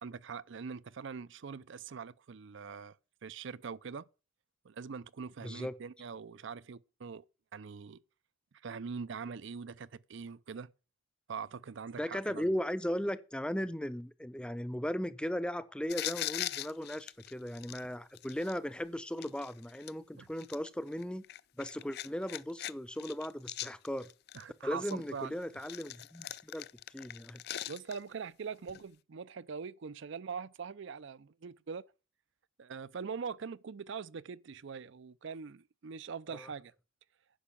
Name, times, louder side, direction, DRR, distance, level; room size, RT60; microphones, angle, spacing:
voice 1, 0.0-3.0 3.2-4.1 4.6-7.3 7.5-8.0 8.6-10.7 11.3-12.5 20.2-20.3 24.3-25.4 27.7-31.8 32.6-36.7, right 5 dB, 65° right, 0.5 m, -43 dB
voice 2, 5.4-5.7 12.0-21.2 21.6-24.1 24.6-26.7 26.9-27.4 36.3-36.5, equal, 5° left, 0.6 m, -37 dB
sound 1, 15.9-18.6 19.2-19.9 20.4-22.7 23.0-24.4 24.9-28.1 28.7-28.8, left 13 dB, 55° left, 0.5 m, -41 dB
10.0 x 6.1 x 8.5 m
head